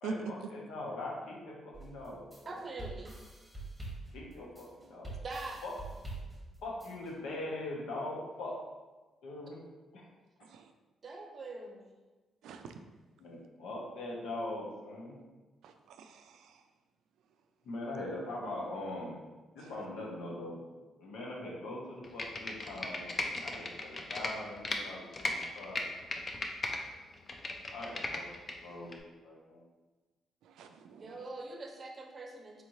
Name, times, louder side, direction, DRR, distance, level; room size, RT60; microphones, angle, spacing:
voice 1, 0.0-2.6 4.1-5.1 5.6-5.7 6.6-8.5 9.2-9.6 9.9-10.0 13.2-15.1 17.6-19.1 19.5-20.6 21.0-23.0 23.4-25.8 27.7-28.3 28.6-29.6, left 2 dB, 90° left, -3 dB, 1.0 m, -41 dB
sound 1, 1.7-7.1, right 2 dB, 10° right, 1.0 m, -45 dB
voice 2, 2.5-3.2 5.2-5.6 11.0-12.0 30.9-32.6, right 2 dB, 40° right, 2 dB, 0.6 m, -43 dB
voice 3, 12.4-12.7 15.6-16.6 19.6-19.7 30.4-31.3, right 5 dB, 85° right, 7 dB, 0.3 m, -45 dB
Computer keyboard, 22.0-24.8 25.1-26.8 27.1-28.5 28.9-29.0, left 2 dB, 35° left, 0.4 m, -36 dB
4.2 x 3.0 x 2.7 m, 1.2 s
cardioid pair, 110°, 0 cm